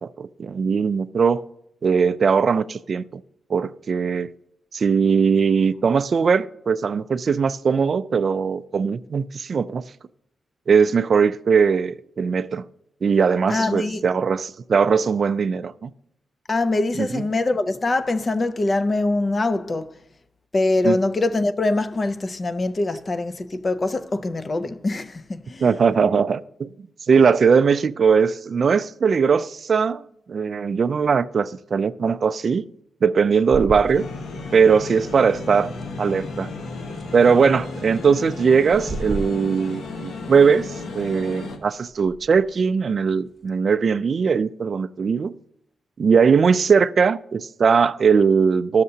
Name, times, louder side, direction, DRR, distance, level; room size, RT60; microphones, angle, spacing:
voice 1, 0.0-1.4 1.8-3.2 3.5-4.3 4.7-9.8 10.7-12.6 13.0-15.9 17.0-17.2 20.8-21.0 25.6-26.7 27.1-30.0 30.3-32.6 33.0-34.1 34.5-35.7 36.0-36.5 37.1-45.3 46.0-48.8, right 6 dB, 45° right, 0.3 m, -20 dB
voice 2, 13.5-14.1 16.5-20.0 20.5-25.7, left 2 dB, 30° left, 0.4 m, -23 dB
sound 1, 33.3-43.6, right 2 dB, 15° right, 0.8 m, -39 dB
sound 2, 33.9-41.6, left 3 dB, 80° left, 1.1 m, -34 dB
13.5 x 6.6 x 2.7 m
wide cardioid pair, 130°, 0 cm